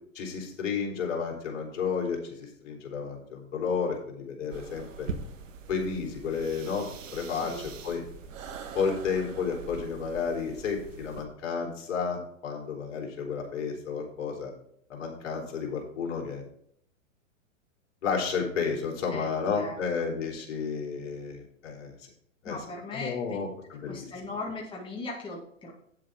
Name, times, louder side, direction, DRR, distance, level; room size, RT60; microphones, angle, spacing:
voice 1, 0.1-5.1 5.7-8.0 8.7-14.5 14.9-16.4 18.0-21.9 22.4-22.6 22.9-24.0, left 5 dB, 60° left, 1 dB, 3.4 m, -32 dB
sound 1, 4.5-11.2, right 5 dB, 70° right, 1.5 m, -42 dB
voice 2, 7.3-7.7 19.1-20.1 22.4-23.4 23.9-25.7, left 2 dB, 10° left, -3 dB, 2.2 m, -39 dB
9.2 x 7.3 x 4.6 m, 0.69 s
hypercardioid pair, 125°, 40 cm